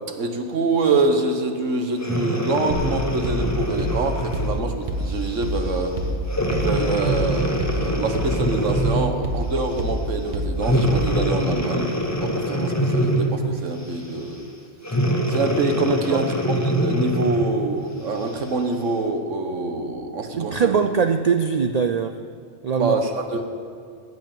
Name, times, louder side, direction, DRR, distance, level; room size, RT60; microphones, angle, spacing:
voice 1, 0.1-5.9 6.5-11.9 12.2-14.5 15.3-20.8 22.8-23.4, right 3 dB, 85° right, 5 dB, 1.5 m, -25 dB
Breathing, 2.0-4.6 5.2-5.5 6.3-9.2 10.6-13.5 14.8-17.6 18.2-18.3, equal, 15° left, 1.0 m, -24 dB
sound 1, 2.7-11.4, right 1 dB, 40° right, 1.4 m, -28 dB
voice 2, 20.4-22.2 22.6-22.9, right 6 dB, 65° right, 8 dB, 0.4 m, -21 dB
16.0 x 6.4 x 9.0 m, 2.2 s
omnidirectional pair, 1.2 m